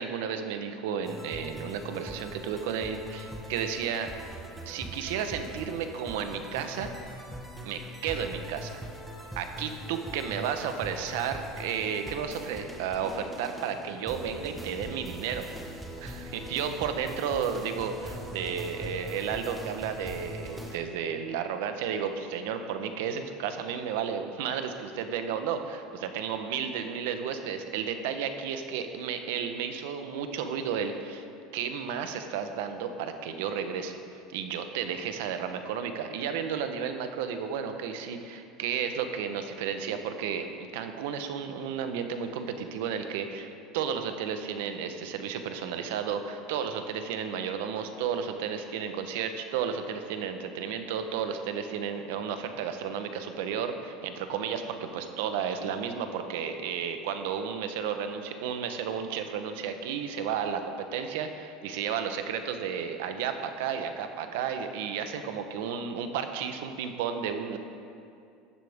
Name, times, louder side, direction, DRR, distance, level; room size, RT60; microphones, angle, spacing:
voice 1, 0.0-4.1 4.6-6.9 7.6-8.8 9.4-15.7 16.0-31.3 31.5-34.0 34.3-40.5 40.7-67.6, right 7 dB, 80° right, 7 dB, 1.0 m, -33 dB
sound 1, 1.0-20.8, equal, 5° right, 1.2 m, -42 dB
15.0 x 10.0 x 3.6 m, 2.5 s
supercardioid pair, 135°, 0 cm